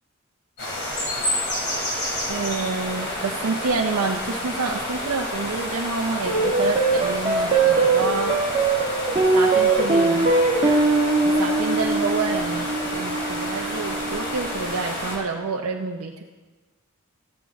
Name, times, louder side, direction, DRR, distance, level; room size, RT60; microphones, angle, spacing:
sound 1, 0.6-15.2, left 1 dB, 50° left, 3.3 m, -29 dB
voice 1, 2.3-8.4 9.3-10.3 11.2-16.1, right 4 dB, 80° right, 1 dB, 0.6 m, -28 dB
sound 2, 6.3-14.9, right 3 dB, 25° right, 1.4 m, -22 dB
14.0 x 8.3 x 3.5 m, 1.3 s
head